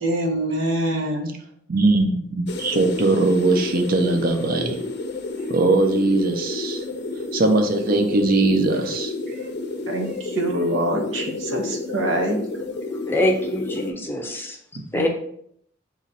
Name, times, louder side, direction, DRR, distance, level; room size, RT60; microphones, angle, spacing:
voice 1, 0.0-1.3 9.9-12.4 14.9-15.1, right 1 dB, 85° right, 1 dB, 1.0 m, -24 dB
voice 2, 1.7-4.8 5.5-6.8 7.3-9.1, right 2 dB, 50° right, 4 dB, 0.6 m, -20 dB
sound 1, 2.5-13.9, left 3 dB, 60° left, 0.5 m, -31 dB
voice 3, 12.9-14.6 14.9-15.1, left 1 dB, 10° left, 2 dB, 0.5 m, -24 dB
3.9 x 3.0 x 4.2 m, 0.68 s
head